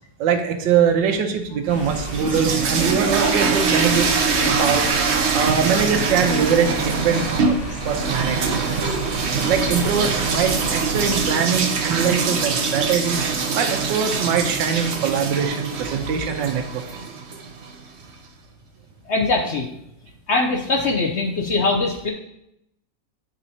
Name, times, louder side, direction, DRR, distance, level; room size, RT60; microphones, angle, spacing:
voice 1, 0.2-4.9 5.3-7.5 7.8-8.8 9.5-13.3 13.6-16.8, right 7 dB, 85° right, 6 dB, 1.4 m, -22 dB
sound 1, 1.7-11.3, right 1 dB, 40° left, 2.5 m, -32 dB
sound 2, 1.8-17.8, right 5 dB, 60° right, 0.7 m, -23 dB
voice 2, 19.1-19.7 20.3-22.1, left 3 dB, 70° left, 2 dB, 0.6 m, -21 dB
9.9 x 4.2 x 2.7 m, 0.80 s
omnidirectional pair, 2.0 m